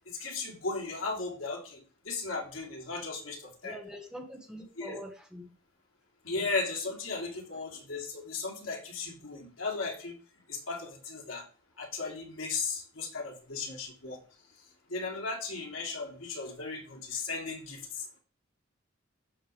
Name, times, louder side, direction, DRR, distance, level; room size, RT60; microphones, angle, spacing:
voice 1, 0.1-3.8 4.8-5.0 6.2-10.1 10.5-11.4 11.8-14.2 14.9-18.0, left 4 dB, 70° left, -1 dB, 3.2 m, -36 dB
voice 2, 3.6-5.5 6.3-6.5, equal, 5° right, 1 dB, 1.7 m, -44 dB
12.0 x 7.2 x 3.5 m, 0.38 s
head